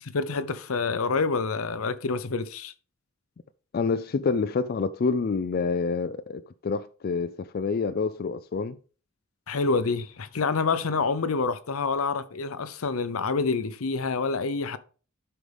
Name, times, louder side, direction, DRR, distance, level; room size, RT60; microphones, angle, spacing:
voice 1, 0.0-2.7 9.5-14.8, left 4 dB, 85° left, 0.7 m, -27 dB
voice 2, 3.7-8.8, left 4 dB, 45° left, 0.3 m, -27 dB
12.0 x 4.9 x 3.5 m
head